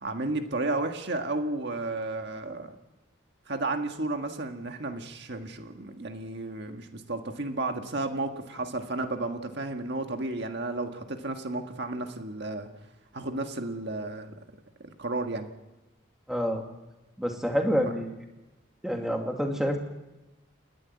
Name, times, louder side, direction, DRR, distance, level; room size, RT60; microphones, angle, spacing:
voice 1, 0.0-2.7 3.5-12.7 13.1-14.3 14.8-15.5, right 2 dB, 55° right, 5 dB, 1.7 m, -32 dB
voice 2, 16.3-16.6 17.2-18.2 18.8-19.8, equal, ahead, 2 dB, 2.2 m, -27 dB
29.5 x 11.0 x 9.5 m, 1.0 s
head